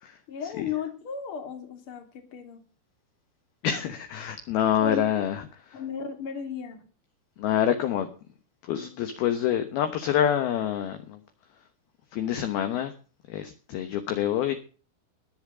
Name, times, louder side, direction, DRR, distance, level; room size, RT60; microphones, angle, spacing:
voice 1, 0.3-2.6 4.8-5.0 5.7-6.9, left 6 dB, 35° left, 2.4 m, -35 dB
voice 2, 3.6-5.8 7.4-8.1 8.6-11.2 12.1-12.9 13.3-14.5, left 10 dB, 70° left, 2.4 m, -27 dB
20.5 x 7.3 x 5.0 m
omnidirectional pair, 5.8 m